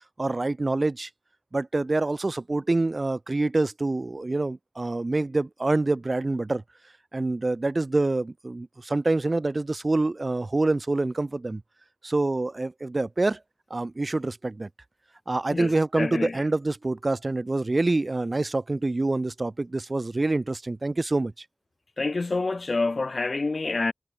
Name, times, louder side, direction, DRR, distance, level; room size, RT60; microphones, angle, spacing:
voice 1, 0.2-1.1 1.5-6.6 7.1-11.6 12.0-13.4 13.7-14.7 15.3-21.4, right 2 dB, 60° right, 0.6 m, -26 dB
voice 2, 15.5-16.4 22.0-23.9, left 3 dB, 80° left, 0.3 m, -27 dB
wide cardioid pair, 60°, 0 cm